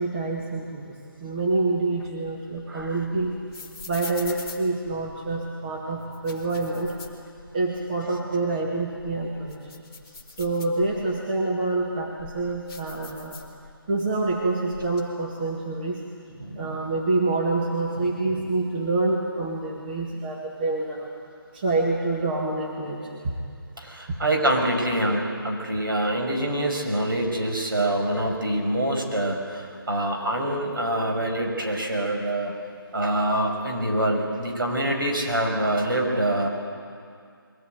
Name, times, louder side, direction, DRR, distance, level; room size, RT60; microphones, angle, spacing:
voice 1, 0.0-3.4 3.9-6.9 7.5-13.4 13.9-16.0 16.6-21.1 21.5-23.3 24.1-24.2, right 3 dB, 25° right, -2 dB, 1.8 m, -27 dB
sound 1, 2.0-5.4 6.0-7.8 8.2-8.3 8.8-11.2 11.8-13.9 14.2-15.0, left 4 dB, 10° left, 1.6 m, -43 dB
voice 2, 16.4-16.8 23.8-32.5 32.9-36.5, right 1 dB, 65° right, 1 dB, 5.6 m, -25 dB
22.5 x 16.0 x 9.2 m, 2.3 s
figure-of-eight pair, 165°, 12 cm